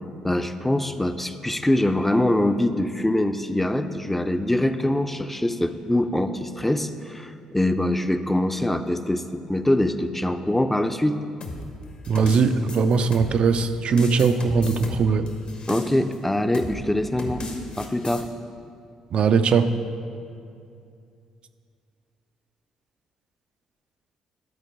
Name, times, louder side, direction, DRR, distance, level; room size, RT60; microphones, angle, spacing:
voice 1, 0.2-11.2 15.7-17.4 17.8-18.3, left 1 dB, 10° left, 9 dB, 0.5 m, -23 dB
sound 1, 11.4-13.6 14.0-16.2 16.5-16.8 17.2-18.2, left 2 dB, 55° left, 1.2 m, -35 dB
voice 2, 12.1-15.3 19.1-19.7, right 5 dB, 55° right, 10 dB, 0.4 m, -20 dB
11.0 x 4.4 x 5.3 m, 2.5 s
hypercardioid pair, 50°, 2 cm